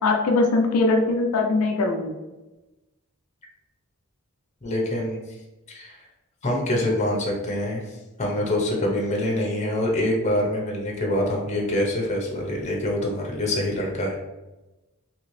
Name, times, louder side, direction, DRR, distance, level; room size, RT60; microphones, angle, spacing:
voice 1, 0.0-2.2, left 3 dB, 90° left, 2 dB, 0.5 m, -21 dB
voice 2, 4.6-5.2 5.7-6.0 6.4-14.2, left 1 dB, 30° left, -1 dB, 0.7 m, -25 dB
3.0 x 2.8 x 3.1 m, 1.1 s
head